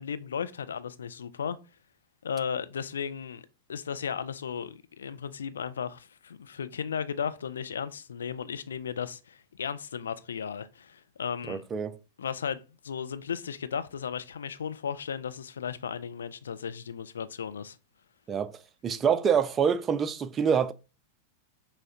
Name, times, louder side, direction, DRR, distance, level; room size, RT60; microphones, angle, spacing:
voice 1, 0.0-1.6 2.2-11.6 12.2-17.8, left 7 dB, 75° left, 0.3 m, -35 dB
voice 2, 11.5-12.0 18.3-20.7, right 7 dB, 25° right, 0.3 m, -26 dB
5.6 x 2.1 x 2.7 m
figure-of-eight pair, 95°, 0 cm